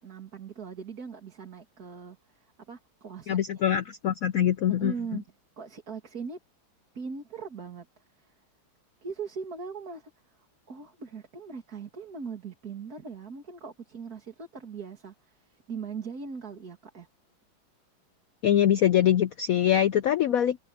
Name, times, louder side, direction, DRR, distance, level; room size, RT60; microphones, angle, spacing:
voice 1, 0.0-3.7 4.7-5.2 5.6-6.4 6.9-7.9 8.2-8.4 9.0-10.1 10.7-17.1, right 5 dB, 50° right, 2.8 m, -40 dB
voice 2, 3.3-4.9 18.4-20.6, left 10 dB, 75° left, 0.7 m, -23 dB
open air
omnidirectional pair, 2.2 m